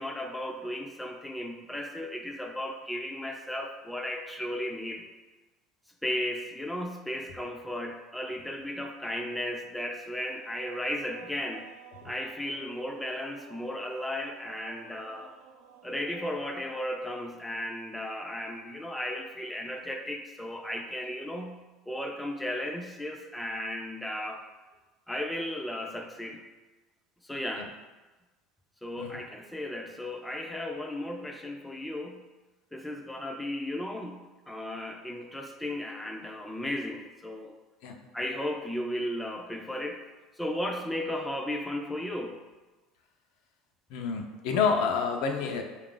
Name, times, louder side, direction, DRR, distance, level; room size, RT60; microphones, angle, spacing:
voice 1, 0.0-5.1 6.0-11.7 12.0-15.3 15.8-21.6 21.9-24.4 25.1-26.4 27.2-27.7 28.8-32.2 32.7-37.6 38.1-40.0 40.4-42.4, left 1 dB, 5° left, 2 dB, 0.4 m, -35 dB
sound 1, 10.2-16.8, right 9 dB, 85° right, 0.4 m, -53 dB
voice 2, 43.9-45.6, left 5 dB, 70° left, 3 dB, 0.5 m, -28 dB
4.6 x 2.4 x 3.7 m, 1.2 s
cardioid pair, 130°, 0 cm